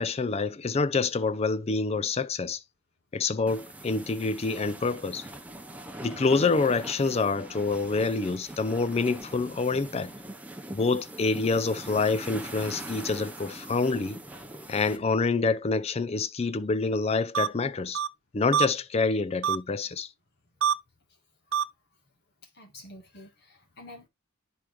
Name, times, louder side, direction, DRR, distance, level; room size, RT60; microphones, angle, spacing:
voice 1, 0.0-2.6 3.1-5.3 6.0-10.1 10.7-14.2 14.7-18.0 18.3-20.1, left 4 dB, 30° left, 0.4 m, -27 dB
sound 1, 3.5-15.0, right 1 dB, 5° right, 0.8 m, -42 dB
sound 2, 17.3-17.5 17.9-18.1 18.5-18.7 19.4-19.6 20.6-20.7 21.5-21.6, right 8 dB, 60° right, 0.5 m, -24 dB
voice 2, 22.4-24.1, left 1 dB, 50° left, 2.1 m, -49 dB
10.5 x 4.9 x 2.2 m
head